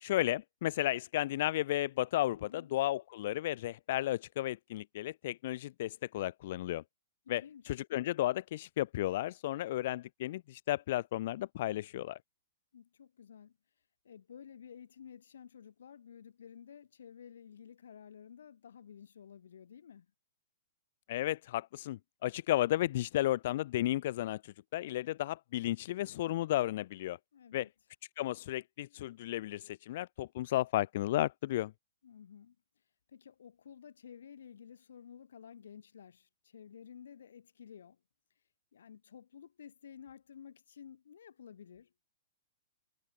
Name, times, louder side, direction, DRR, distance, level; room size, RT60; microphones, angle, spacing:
voice 1, 0.0-6.8 7.3-12.2 21.1-27.2 27.5-27.7 28.2-31.7, left 15 dB, 45° left, 0.5 m, -33 dB
voice 2, 2.3-2.8 7.3-7.7 12.7-13.6 14.0-20.1 27.3-27.7 32.0-32.6 33.1-38.0 38.7-41.9, left 8 dB, 85° left, 1.9 m, -53 dB
hypercardioid pair, 170°, 0 cm